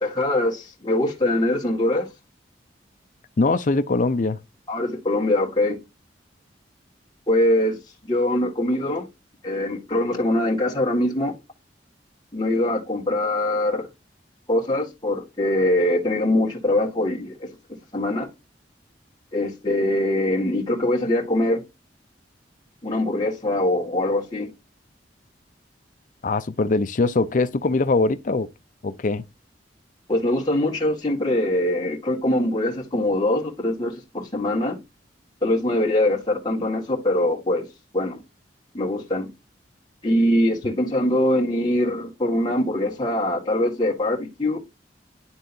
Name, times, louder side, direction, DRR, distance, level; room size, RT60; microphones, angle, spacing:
voice 1, 0.0-2.1 4.7-5.8 7.3-7.8 8.0-9.1 9.4-11.3 12.3-13.9 14.5-17.6 17.9-18.3 19.3-21.6 22.8-24.5 30.1-34.8 35.4-37.7 37.9-38.2 38.7-39.3 40.0-44.6, left 1 dB, 25° left, 1.8 m, -23 dB
voice 2, 3.4-4.4 26.2-28.5 28.8-29.2, left 3 dB, 45° left, 0.5 m, -22 dB
11.0 x 3.8 x 2.7 m
head